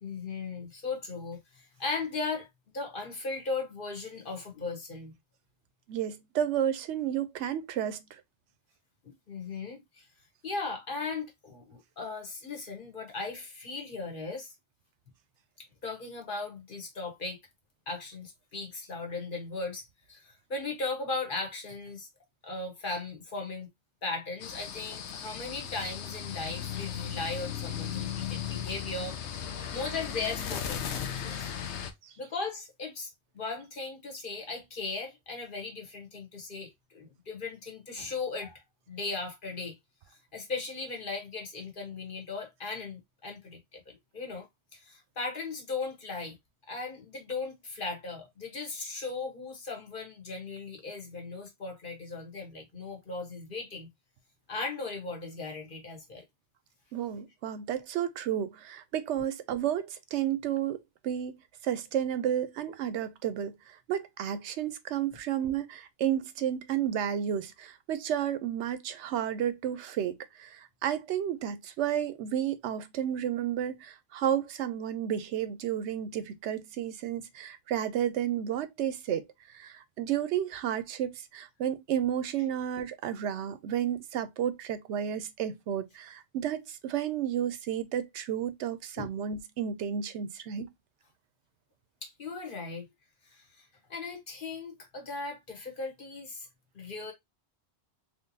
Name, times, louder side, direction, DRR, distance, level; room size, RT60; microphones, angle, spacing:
voice 1, 0.0-2.5 2.7-5.1 9.0-10.1 10.4-14.5 15.6-17.4 17.9-22.1 22.4-23.7 24.0-29.2 29.7-31.5 32.2-39.8 40.1-44.5 44.7-46.4 46.7-53.9 54.5-56.2 89.0-89.1 92.0-92.9 93.3-96.5 96.7-97.1, left 3 dB, 50° left, 1.3 m, -37 dB
voice 2, 5.9-8.0 29.6-29.7 32.0-32.1 56.9-61.3 61.6-90.7, right 10 dB, 85° right, 0.9 m, -32 dB
sound 1, 24.4-31.9, left 9 dB, 85° left, 0.9 m, -36 dB
3.6 x 2.9 x 2.6 m
omnidirectional pair, 1.1 m